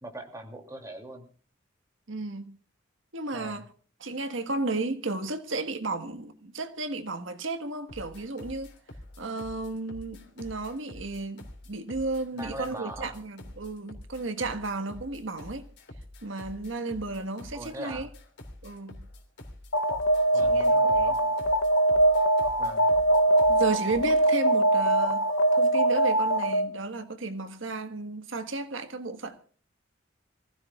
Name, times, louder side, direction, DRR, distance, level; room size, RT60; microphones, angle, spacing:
voice 1, 0.0-1.3 3.3-3.7 12.3-13.2 17.5-18.1 20.3-21.3 22.6-23.2, right 1 dB, 15° right, 2.8 m, -41 dB
voice 2, 2.1-2.6 3.1-3.6 4.0-8.7 9.2-15.7 16.2-18.1 18.6-19.1 20.4-21.1 23.5-25.2 25.5-29.4, right 3 dB, 70° right, 1.5 m, -33 dB
sound 1, 7.9-24.2, left 1 dB, 60° left, 3.1 m, -46 dB
Alarm, 19.7-26.8, right 1 dB, 75° left, 0.9 m, -22 dB
26.5 x 15.5 x 2.4 m
head